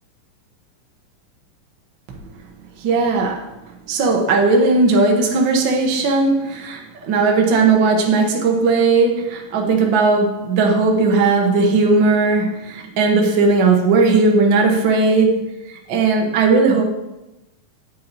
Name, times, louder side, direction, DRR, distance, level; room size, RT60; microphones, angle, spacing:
voice 1, 2.8-3.5 3.9-16.8, right 3 dB, 75° right, 1 dB, 1.1 m, -17 dB
8.3 x 7.5 x 4.1 m, 0.97 s
omnidirectional pair, 4.0 m